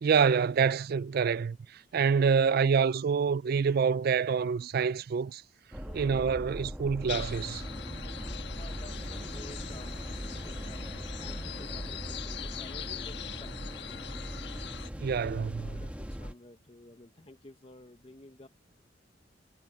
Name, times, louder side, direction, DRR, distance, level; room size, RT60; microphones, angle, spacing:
voice 1, 0.0-5.4 5.9-7.6 15.0-15.7, right 6 dB, 55° right, 0.4 m, -27 dB
voice 2, 2.3-2.6 5.8-6.2 8.6-14.3 15.2-18.5, left 2 dB, 30° left, 1.1 m, -53 dB
sound 1, 5.7-16.3, equal, 10° right, 1.3 m, -40 dB
sound 2, 7.1-14.9, left 8 dB, 65° left, 1.5 m, -42 dB
head